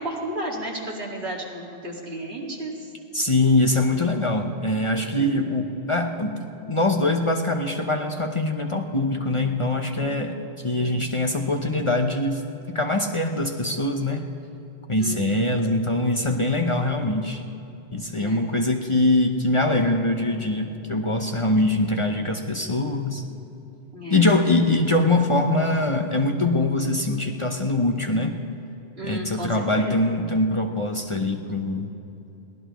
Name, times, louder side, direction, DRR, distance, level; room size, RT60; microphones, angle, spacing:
voice 1, 0.0-2.9 5.2-5.4 10.0-10.5 15.0-15.5 18.2-18.4 21.4-21.6 23.9-24.3 29.0-30.1, right 1 dB, 70° right, -2 dB, 2.4 m, -34 dB
voice 2, 3.1-6.4 6.7-10.4 10.6-12.4 12.7-14.3 14.9-17.4 17.9-23.2 24.1-28.4 29.0-31.9, left 2 dB, 30° left, 3 dB, 0.8 m, -23 dB
22.5 x 17.0 x 3.1 m, 2.9 s
omnidirectional pair, 1.1 m